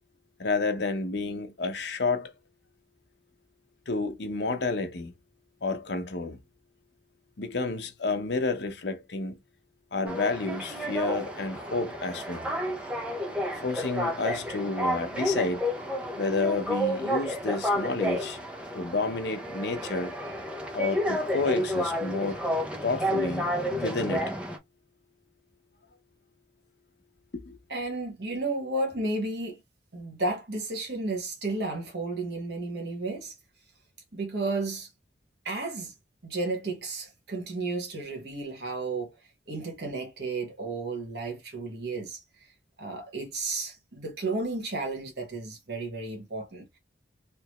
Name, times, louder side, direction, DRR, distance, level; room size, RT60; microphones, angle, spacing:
voice 1, 0.4-2.3 3.9-5.1 5.6-6.4 7.4-9.4 9.9-12.5 13.5-15.7 16.2-18.4 18.7-20.1 20.7-22.4 22.8-23.5 23.7-24.2 27.3-27.6, left 3 dB, 70° left, 0.8 m, -30 dB
sound 1, 10.1-24.6, equal, 5° right, 0.6 m, -31 dB
voice 2, 27.7-29.6 29.9-33.3 34.1-34.9 35.4-35.9 36.2-39.1 39.5-42.5 42.8-46.8, right 2 dB, 65° right, 1.3 m, -33 dB
3.4 x 2.9 x 3.0 m
head